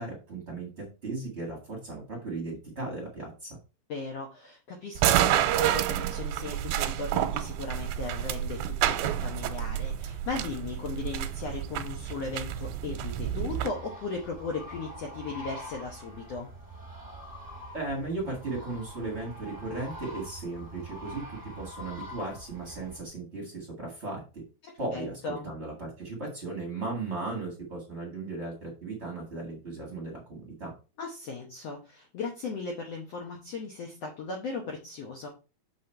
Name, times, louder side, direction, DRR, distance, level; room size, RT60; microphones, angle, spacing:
voice 1, 0.0-3.6 17.7-24.4 24.8-30.7, right 3 dB, 30° right, -1 dB, 1.2 m, -36 dB
voice 2, 3.9-16.5 24.6-25.5 31.0-35.3, left 4 dB, 70° left, 2 dB, 1.5 m, -37 dB
sound 1, 5.0-13.7, right 12 dB, 90° right, 2.5 m, -29 dB
Ghostly Ecco With mild hiss and hum, 13.6-23.0, equal, 5° right, 1.6 m, -44 dB
6.3 x 5.6 x 4.5 m, 0.32 s
omnidirectional pair, 4.4 m